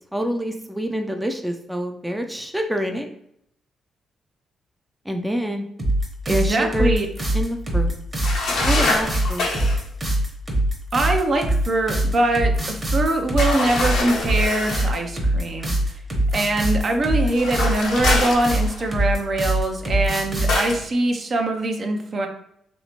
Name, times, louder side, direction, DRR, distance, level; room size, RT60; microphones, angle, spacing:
voice 1, 0.1-3.1 5.1-5.6 6.3-6.9 7.3-7.9 8.6-9.5, equal, 5° right, 4 dB, 0.4 m, -26 dB
sound 1, 5.8-20.7, right 1 dB, 35° right, 1.1 m, -23 dB
voice 2, 6.3-7.1 10.9-15.7 16.3-22.3, right 2 dB, 50° right, 3 dB, 0.6 m, -23 dB
sound 2, 8.2-9.8 13.4-14.9 17.3-19.0 20.5-20.8, left 2 dB, 70° left, 0.8 m, -25 dB
3.2 x 2.7 x 3.0 m, 0.73 s
hypercardioid pair, 45°, 0 cm